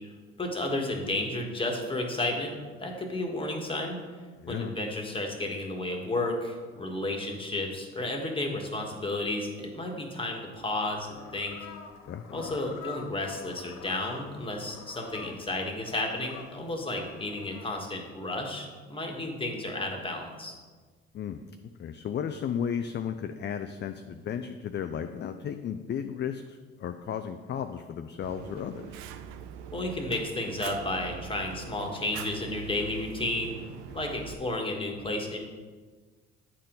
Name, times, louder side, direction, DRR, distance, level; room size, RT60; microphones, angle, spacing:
voice 1, 0.4-4.0 4.5-11.5 12.3-20.6 29.7-33.5 33.9-35.4, left 2 dB, 20° left, 1 dB, 1.6 m, -32 dB
voice 2, 4.4-4.7 12.1-12.6 21.1-29.0 33.9-34.0, left 8 dB, 40° left, 8 dB, 0.4 m, -34 dB
sound 1, 10.9-17.7, left 7 dB, 65° left, 0.8 m, -47 dB
Fire, 28.2-34.3, right 8 dB, 85° right, 0.5 m, -43 dB
8.5 x 4.3 x 3.9 m, 1.4 s
hypercardioid pair, 60°, 30 cm